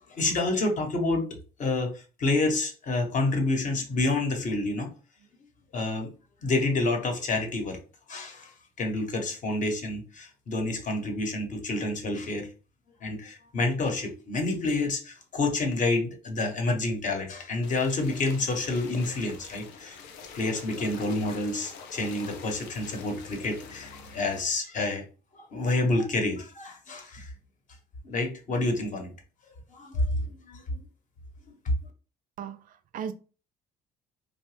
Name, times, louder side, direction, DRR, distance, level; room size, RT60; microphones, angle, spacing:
voice 1, 0.1-1.3 1.6-4.9 5.7-6.1 6.4-7.8 8.1-8.5 8.8-12.5 13.0-20.0 20.3-25.0 25.3-27.3 28.0-29.1 29.7-30.6, left 2 dB, 50° left, 0.9 m, -28 dB
sound 1, 17.6-24.4, left 5 dB, 90° left, 0.6 m, -46 dB
voice 2, 32.4-33.1, right 8 dB, 55° right, 0.4 m, -37 dB
2.9 x 2.1 x 3.2 m
cardioid pair, 110°, 17 cm